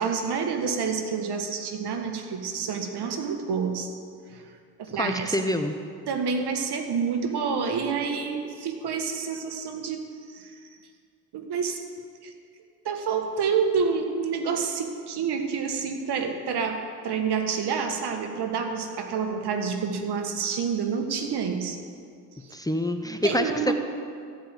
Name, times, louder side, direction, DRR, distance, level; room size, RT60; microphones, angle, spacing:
voice 1, 0.0-3.9 4.3-4.4 4.8-5.4 6.1-10.0 10.3-10.5 11.3-11.8 12.2-12.3 12.8-21.8 22.4-22.5 23.2-23.7, right 6 dB, 70° right, 5 dB, 1.5 m, -28 dB
voice 2, 5.0-5.7 22.5-23.7, left 1 dB, 10° left, 6 dB, 0.8 m, -26 dB
14.0 x 5.2 x 9.1 m, 2.2 s
supercardioid pair, 65°, 41 cm